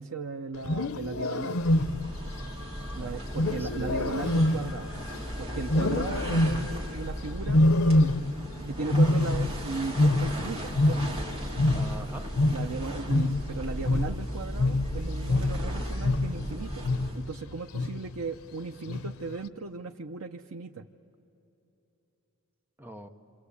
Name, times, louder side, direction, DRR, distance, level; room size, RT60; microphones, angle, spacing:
voice 1, 0.0-1.6 2.9-4.9 5.4-7.6 8.0-11.2 12.5-16.8 17.1-20.8, right 4 dB, 90° right, 3 dB, 0.8 m, -37 dB
Wild animals, 0.5-2.3 3.3-5.2 5.7-6.9 7.5-8.5 8.8-11.3 11.6-16.5 16.8-17.3 17.7-18.2 18.9-19.3, left 1 dB, 90° left, 0.8 m, -25 dB
sound 1, 1.5-17.4, equal, 30° right, 3.2 m, -36 dB
voice 2, 2.9-4.3 11.7-12.3 22.8-23.1, right 1 dB, 10° right, 6 dB, 1.0 m, -43 dB
26.5 x 26.5 x 8.4 m, 3.0 s
head